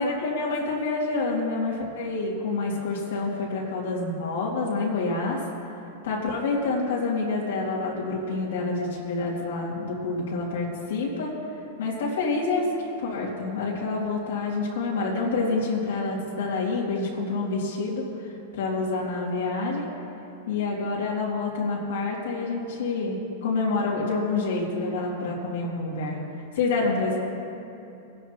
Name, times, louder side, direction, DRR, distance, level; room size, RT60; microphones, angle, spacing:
voice 1, 0.0-5.4 6.0-11.3 11.8-19.9 20.5-26.2 26.5-27.2, left 3 dB, 80° left, -4 dB, 2.4 m, -27 dB
23.0 x 11.0 x 2.9 m, 2.8 s
hypercardioid pair, 130°, 0 cm